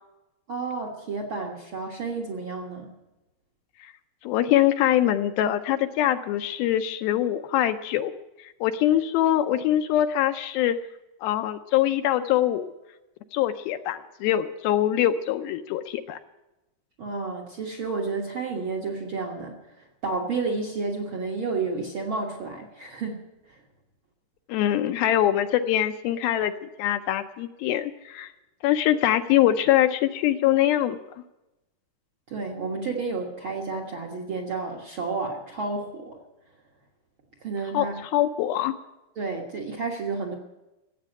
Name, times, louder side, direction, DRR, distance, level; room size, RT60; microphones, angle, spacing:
voice 1, 0.5-2.9 17.0-23.6 32.3-36.2 37.4-38.0 39.1-40.3, right 4 dB, 55° right, 3 dB, 1.4 m, -31 dB
voice 2, 4.2-8.1 8.4-10.8 11.2-12.7 13.3-16.2 24.5-28.3 28.6-31.0 37.7-38.7, left 12 dB, 80° left, 8 dB, 2.4 m, -23 dB
15.5 x 8.4 x 8.9 m, 0.97 s
omnidirectional pair, 4.5 m